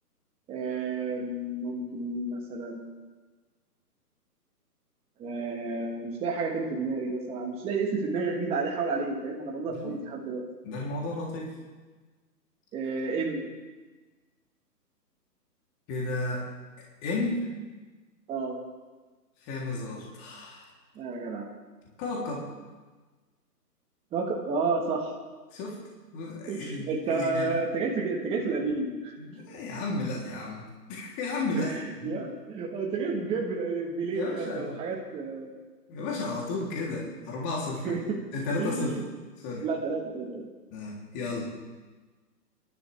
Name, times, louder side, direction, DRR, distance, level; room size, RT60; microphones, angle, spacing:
voice 1, 0.5-2.8 5.2-10.4 12.7-13.4 18.3-18.6 20.9-21.5 24.1-25.1 26.5-29.1 31.6-31.7 32.0-35.5 37.8-38.2 38.6-39.0 39.6-40.5, right 4 dB, 10° right, -1 dB, 1.4 m, -31 dB
voice 2, 10.6-11.5 15.9-16.4 17.0-17.5 19.4-20.7 22.0-22.5 25.5-25.8 26.1-27.5 29.2-32.2 34.1-34.7 35.9-38.0 38.3-39.0 39.4-39.6 40.7-41.6, left 2 dB, 25° left, -3 dB, 3.2 m, -33 dB
28.0 x 12.0 x 3.4 m, 1.3 s
hypercardioid pair, 140°, 49 cm